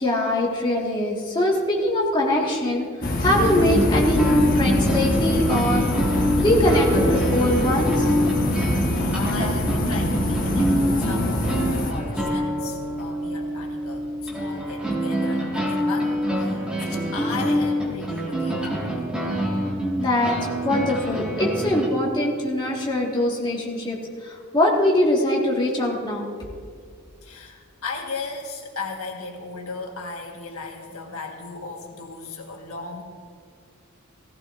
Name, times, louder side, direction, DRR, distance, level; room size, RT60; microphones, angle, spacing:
voice 1, 0.0-2.9 3.2-8.1 14.3-14.5 20.0-20.4 20.6-24.0 24.2-26.3, left 1 dB, 20° left, -3 dB, 1.8 m, -22 dB
sound 1, 3.0-11.9, left 1 dB, 40° left, 1.3 m, -24 dB
sound 2, 3.3-21.9, equal, 5° right, 1.8 m, -26 dB
sound 3, 3.9-9.3, equal, 55° left, 2.6 m, -37 dB
voice 2, 8.8-19.1 27.2-33.0, left 3 dB, 80° left, 1 dB, 1.5 m, -36 dB
17.0 x 15.0 x 2.6 m, 2.2 s
head